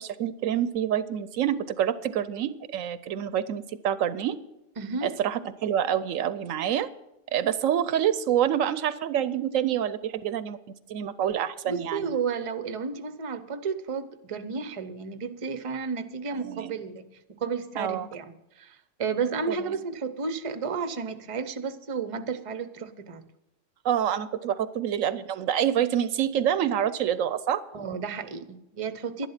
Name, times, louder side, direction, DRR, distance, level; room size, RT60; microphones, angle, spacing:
voice 1, 0.0-4.4 5.0-6.9 7.3-10.6 10.9-12.2 16.3-16.8 17.8-18.1 19.5-19.8 23.8-27.6, right 10 dB, 75° right, 15 dB, 1.0 m, -27 dB
voice 2, 4.8-5.2 11.7-23.3 27.7-29.3, right 5 dB, 30° right, 11 dB, 0.6 m, -32 dB
11.0 x 11.0 x 5.7 m, 0.91 s
omnidirectional pair, 1.4 m